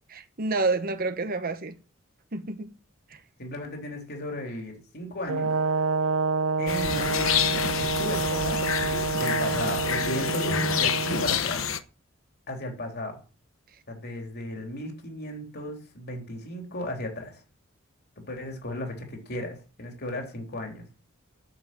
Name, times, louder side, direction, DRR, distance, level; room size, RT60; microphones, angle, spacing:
voice 1, 0.1-1.7 2.3-2.7 3.1-3.2, right 3 dB, 45° right, 1.1 m, -29 dB
voice 2, 3.4-5.5 6.6-8.6 9.1-11.7 12.5-13.2 13.9-17.4 18.2-20.8, left 1 dB, 50° left, 3.5 m, -35 dB
Brass instrument, 5.3-11.4, right 4 dB, 85° right, 0.7 m, -28 dB
sound 1, 6.7-11.8, left 7 dB, 70° left, 1.0 m, -28 dB
9.8 x 7.7 x 9.1 m
head